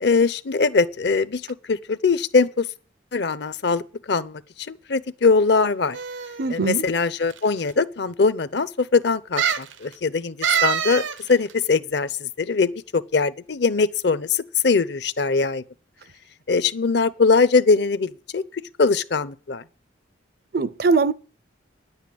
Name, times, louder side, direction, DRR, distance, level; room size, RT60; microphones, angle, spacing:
voice 1, 0.0-2.7 3.1-4.4 4.7-6.0 6.5-15.6 16.5-19.6, left 4 dB, 60° left, 0.7 m, -21 dB
sound 1, 5.9-6.5 7.3-7.4 7.7-7.8 9.4-9.7 10.4-11.2 11.5-11.6, right 8 dB, 80° right, 0.8 m, -24 dB
voice 2, 6.4-6.8 20.5-21.1, right 4 dB, 50° right, 0.5 m, -21 dB
10.5 x 8.1 x 8.4 m
head